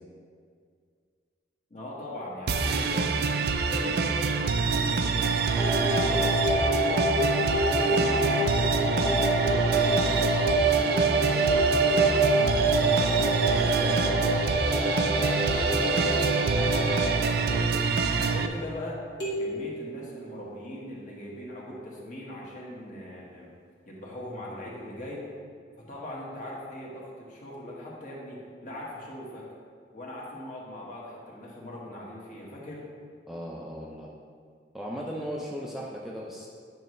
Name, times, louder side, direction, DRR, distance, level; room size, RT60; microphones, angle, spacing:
voice 1, 1.7-3.1 3.6-12.1 12.7-14.4 14.6-17.7 18.1-19.0 19.4-23.5 23.9-25.2 25.8-29.5 29.9-32.9, left 1 dB, 45° left, -4 dB, 1.5 m, -40 dB
sound 1, 2.5-18.5, right 4 dB, 60° right, 0.4 m, -26 dB
sound 2, 5.5-17.2, right 2 dB, 30° right, 0.9 m, -26 dB
sound 3, 19.2-21.1, right 1 dB, 80° left, 1.7 m, -36 dB
voice 2, 33.3-34.1 34.7-36.5, equal, ahead, -4 dB, 0.5 m, -36 dB
9.2 x 5.3 x 3.2 m, 2.1 s
head